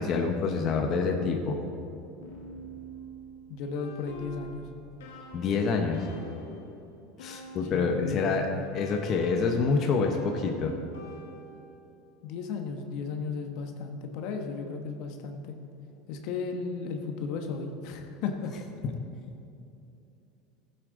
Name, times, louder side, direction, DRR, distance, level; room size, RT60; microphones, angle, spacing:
voice 1, 0.0-1.6 5.3-6.1 7.2-10.8, left 4 dB, 45° left, 3 dB, 1.0 m, -27 dB
sound 1, 2.2-8.2 8.7-12.0, right 1 dB, 90° left, 2.0 m, -46 dB
voice 2, 3.5-4.6 7.7-8.6 12.2-15.5 16.1-18.5, left 5 dB, 65° left, 4 dB, 1.1 m, -35 dB
15.0 x 8.0 x 3.9 m, 2.8 s
supercardioid pair, 115°, 0 cm